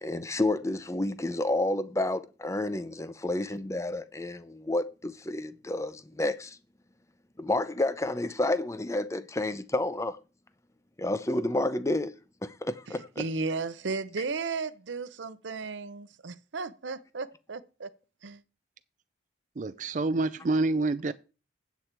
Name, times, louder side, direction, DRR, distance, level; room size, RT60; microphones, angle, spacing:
voice 1, 0.0-6.6 7.4-10.2 11.0-12.1 12.4-13.2, left 2 dB, 15° left, 0.6 m, -30 dB
voice 2, 13.2-17.9 18.2-18.4, right 4 dB, 90° right, 0.7 m, -34 dB
voice 3, 19.6-21.1, right 2 dB, 45° right, 0.4 m, -27 dB
8.3 x 8.1 x 4.4 m
head